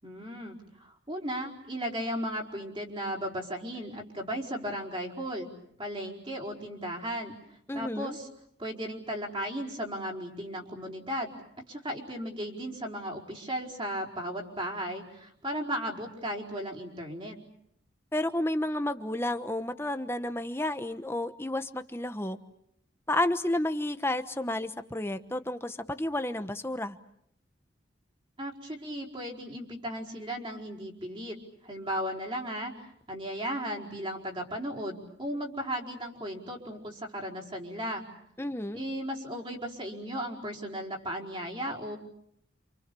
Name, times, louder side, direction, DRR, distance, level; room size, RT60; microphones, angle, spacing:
voice 1, 0.0-5.5 5.8-7.3 7.7-8.3 8.6-11.4 11.7-17.4 28.4-38.1 38.7-42.0, equal, 25° right, 0 dB, 4.7 m, -36 dB
voice 2, 7.7-8.2 18.1-22.4 23.1-27.0 38.4-38.8, left 1 dB, 15° left, 9 dB, 1.1 m, -31 dB
29.0 x 27.5 x 7.0 m, 0.73 s
head